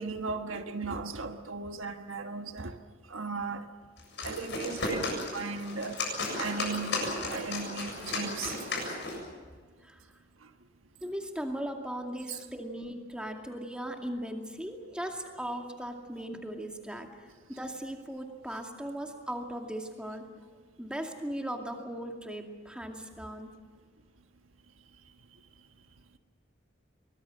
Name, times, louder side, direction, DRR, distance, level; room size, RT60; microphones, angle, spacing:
voice 1, 0.0-2.7 3.1-3.6 4.2-8.6 12.3-12.4, right 4 dB, 90° right, 1.4 m, -37 dB
sound 1, 4.0-9.3, left 2 dB, 60° left, 7.5 m, -34 dB
voice 2, 11.0-17.1 17.5-20.2 20.8-23.5, right 1 dB, 5° right, 2.4 m, -38 dB
23.5 x 20.5 x 7.7 m
head